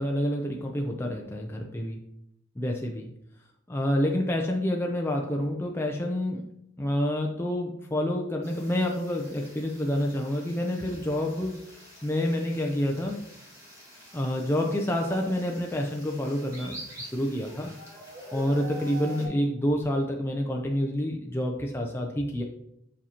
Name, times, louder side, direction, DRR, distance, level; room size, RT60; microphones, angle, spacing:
voice 1, 0.0-2.0 2.6-3.1 3.7-6.4 6.8-11.6 12.0-13.2 14.1-17.7 18.3-22.4, left 1 dB, 10° left, 0 dB, 0.4 m, -28 dB
sound 1, 8.4-19.3, right 1 dB, 15° right, 1.8 m, -46 dB
7.4 x 5.6 x 2.8 m, 0.79 s
head